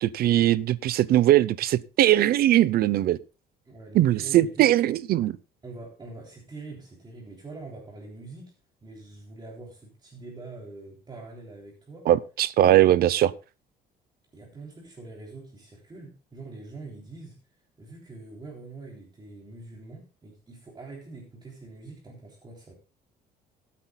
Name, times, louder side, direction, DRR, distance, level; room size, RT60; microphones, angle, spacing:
voice 1, 0.0-3.2 3.9-5.4 12.1-13.3, right 13 dB, 65° right, 0.7 m, -20 dB
voice 2, 3.7-4.7 5.6-8.5 8.8-12.1 14.3-17.4 17.8-22.7, right 3 dB, 25° right, 3.4 m, -44 dB
20.0 x 8.7 x 2.3 m
cardioid pair, 110°, 17 cm